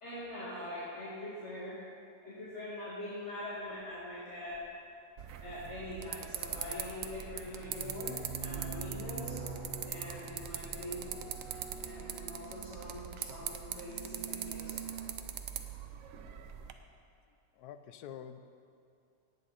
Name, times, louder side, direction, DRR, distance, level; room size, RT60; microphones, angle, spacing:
voice 1, 0.0-1.8 2.2-4.6 5.4-9.4 9.9-11.4 11.8-14.9, left 1 dB, 40° left, -10 dB, 2.4 m, -43 dB
sound 1, 4.5-4.6 6.4-7.1 7.4-12.9 13.7-15.1, right 4 dB, 20° right, 3.1 m, -46 dB
sound 2, 5.2-16.7, right 9 dB, 65° right, 0.8 m, -42 dB
voice 2, 17.5-18.7, left 9 dB, 70° left, 10 dB, 1.0 m, -48 dB
17.5 x 8.8 x 4.2 m, 2.5 s
omnidirectional pair, 2.0 m